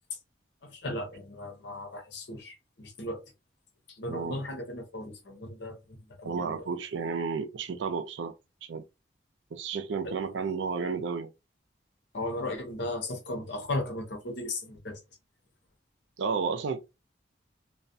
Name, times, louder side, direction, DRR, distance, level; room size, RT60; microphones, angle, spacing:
voice 1, 0.6-3.2 4.0-6.7 10.0-10.1 12.1-15.0, left 1 dB, 75° left, 0.7 m, -36 dB
voice 2, 4.1-4.4 6.2-8.3 8.6-8.8 9.5-11.3 16.2-16.8, right 5 dB, 85° right, 0.4 m, -32 dB
2.3 x 2.1 x 2.6 m
head